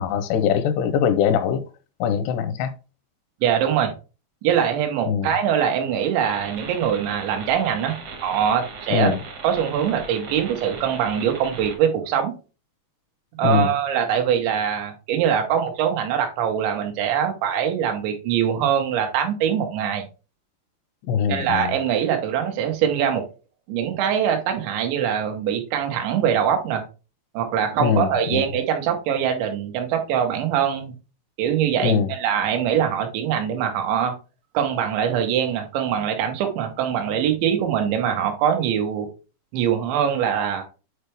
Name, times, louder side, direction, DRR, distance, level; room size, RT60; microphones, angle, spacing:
voice 1, 0.0-1.6 2.0-2.7 5.1-5.3 8.9-9.2 13.4-13.7 21.1-21.7 27.8-28.5 31.8-32.1, left 7 dB, 85° left, 2.6 m, -22 dB
voice 2, 3.4-3.9 4.4-7.9 8.2-9.1 9.4-12.3 13.4-20.0 21.3-23.2 23.7-26.8 27.3-30.9 31.4-34.1 34.5-39.1 39.5-40.6, right 8 dB, 90° right, 3.5 m, -23 dB
sound 1, 6.2-11.8, right 4 dB, 65° right, 1.5 m, -38 dB
8.2 x 4.5 x 3.4 m
omnidirectional pair, 5.1 m